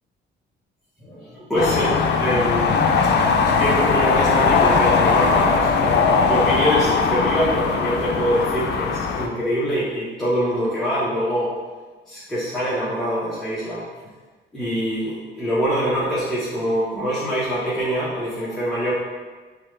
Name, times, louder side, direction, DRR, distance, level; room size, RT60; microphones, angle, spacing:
voice 1, 1.0-2.8 3.4-11.5 12.1-13.8 14.5-18.9, equal, ahead, -11 dB, 1.0 m, -24 dB
sound 1, 1.6-9.3, left 5 dB, 60° left, 0.5 m, -19 dB
5.3 x 2.4 x 3.2 m, 1.3 s
cardioid pair, 90°, 20 cm